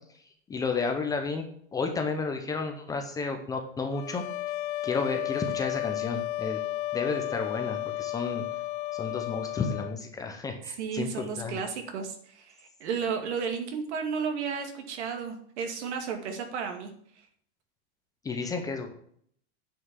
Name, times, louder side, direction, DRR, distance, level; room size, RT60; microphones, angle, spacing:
voice 1, 0.5-1.4 1.7-4.2 4.8-6.6 6.9-8.4 8.9-11.6 18.2-18.9, left 4 dB, 10° left, 4 dB, 0.7 m, -32 dB
sound 1, 3.9-10.0, left 15 dB, 45° left, 0.7 m, -33 dB
voice 2, 10.8-16.9, right 6 dB, 70° right, 5 dB, 2.4 m, -33 dB
9.7 x 5.7 x 7.3 m, 0.62 s
supercardioid pair, 170°, 35 cm